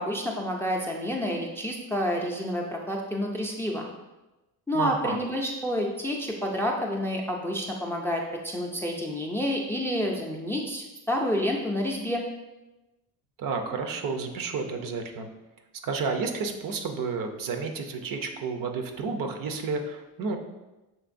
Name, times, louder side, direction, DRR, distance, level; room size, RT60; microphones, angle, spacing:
voice 1, 0.0-3.8 4.7-12.2, equal, 5° left, 0 dB, 0.4 m, -29 dB
voice 2, 4.7-5.2 13.4-15.3 15.8-20.4, right 4 dB, 60° right, 5 dB, 0.6 m, -31 dB
5.8 x 3.0 x 2.5 m, 1.0 s
cardioid pair, 110°, 38 cm